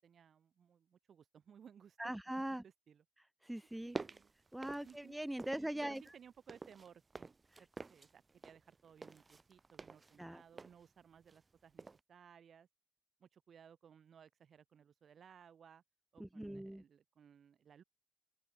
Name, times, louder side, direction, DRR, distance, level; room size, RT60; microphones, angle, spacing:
voice 1, 0.0-2.1 2.6-3.0 3.9-4.3 4.8-5.2 5.5-12.7 13.2-15.8 16.1-17.8, right 7 dB, 55° right, 7.1 m, -61 dB
voice 2, 2.0-2.6 3.4-4.0 4.5-6.0 10.2-10.4 16.2-16.8, right 1 dB, 5° right, 0.5 m, -41 dB
sound 1, 3.7-5.7 5.9-11.5 11.8-12.0, right 3 dB, 25° right, 1.5 m, -49 dB
open air
cardioid pair, 90°, 0 cm